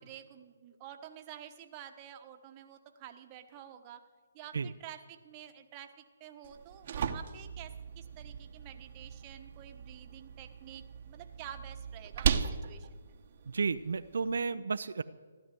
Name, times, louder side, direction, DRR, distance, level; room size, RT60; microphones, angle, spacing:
voice 1, 0.0-4.0 4.3-13.2, right 10 dB, 25° right, 5 dB, 1.2 m, -50 dB
sound 1, 6.4-14.4, right 7 dB, 45° right, 1.0 m, -37 dB
voice 2, 13.5-15.0, right 4 dB, 75° right, 9 dB, 0.6 m, -32 dB
15.5 x 12.0 x 7.7 m, 1.5 s
hypercardioid pair, 160°, 0 cm